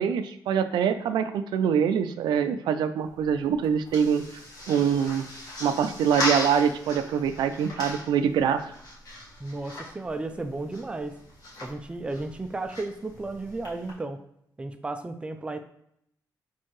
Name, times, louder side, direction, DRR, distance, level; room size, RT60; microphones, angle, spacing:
voice 1, 0.0-4.2 4.7-5.3 5.6-8.7, right 7 dB, 90° right, 10 dB, 0.3 m, -24 dB
sound 1, 3.0-13.9, left 1 dB, 60° left, 1.6 m, -38 dB
voice 2, 9.4-11.2 11.6-14.2 14.6-15.6, right 2 dB, 15° right, 7 dB, 0.4 m, -34 dB
4.4 x 3.6 x 3.1 m, 0.72 s
cardioid pair, 105°, 7 cm